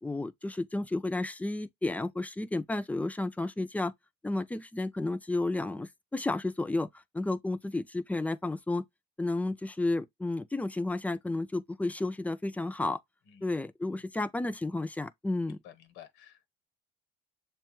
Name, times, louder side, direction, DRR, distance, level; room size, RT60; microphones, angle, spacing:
voice 1, 0.0-3.9 4.2-6.9 7.1-8.8 9.2-13.0 13.4-15.6, left 2 dB, 10° left, 0.3 m, -32 dB
voice 2, 13.3-13.6 13.9-14.3 15.5-16.5, left 10 dB, 85° left, 0.9 m, -54 dB
6.8 x 2.3 x 2.9 m
cardioid pair, 95°, 19 cm